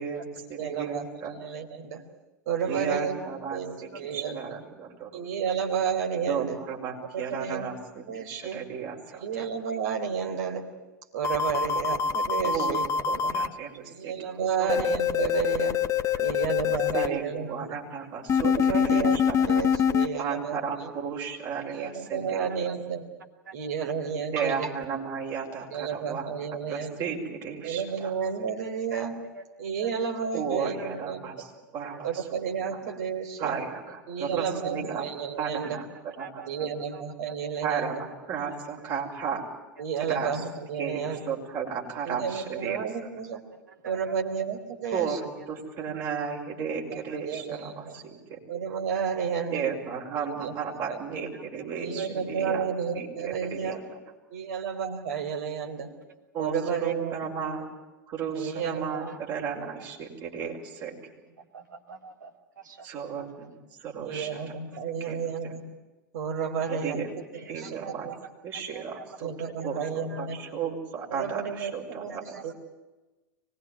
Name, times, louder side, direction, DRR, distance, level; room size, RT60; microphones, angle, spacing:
voice 1, 0.0-1.5 2.7-5.2 6.3-9.5 11.9-12.0 12.4-12.8 13.1-14.1 14.6-14.8 16.9-19.5 20.2-22.5 24.3-26.3 26.7-28.1 30.3-31.5 31.7-32.4 33.4-35.0 35.4-35.8 36.2-36.7 37.6-39.4 40.1-40.3 40.8-42.8 44.9-45.2 45.5-48.4 49.5-52.6 52.9-53.8 56.3-56.6 56.8-57.7 58.1-60.9 62.8-63.5 63.8-64.4 65.0-65.6 66.7-67.1 67.5-68.1 68.4-69.3 69.6-72.4, right 6 dB, 40° right, 0 dB, 6.0 m, -34 dB
voice 2, 0.6-1.1 1.4-2.0 2.5-3.2 3.5-4.6 5.1-6.6 7.1-7.7 8.1-8.6 9.2-10.7 11.1-13.4 13.8-15.8 16.2-17.8 18.4-19.2 19.5-20.9 21.6-23.1 23.5-24.7 25.7-27.1 27.6-29.2 29.6-31.2 32.0-33.6 34.1-35.8 36.5-38.0 39.8-41.2 42.0-43.4 43.8-45.2 46.9-47.0 47.2-48.0 48.5-49.7 50.2-51.0 51.8-53.8 54.3-55.9 56.4-57.2 58.3-59.1 64.0-65.6 66.1-67.0 67.5-67.8 68.0-68.1 69.2-70.4 71.1-72.5, right 7 dB, 60° right, 2 dB, 4.2 m, -32 dB
voice 3, 2.9-3.3 9.3-9.4 28.9-29.0 29.3-29.4 36.2-36.7 36.9-37.0 43.8-43.9 52.0-52.1 54.5-54.6 59.6-59.7 61.5-62.3 62.6-62.8 63.2-63.3 67.4-68.1 68.7-69.0 69.8-70.3 72.3-72.5, right 4 dB, 75° right, 3 dB, 2.9 m, -44 dB
sound 1, 11.2-13.5 14.7-17.1 18.3-20.1, left 7 dB, 30° left, 1.2 m, -24 dB
24.5 x 20.5 x 9.3 m, 1.1 s
figure-of-eight pair, 85°, 10 cm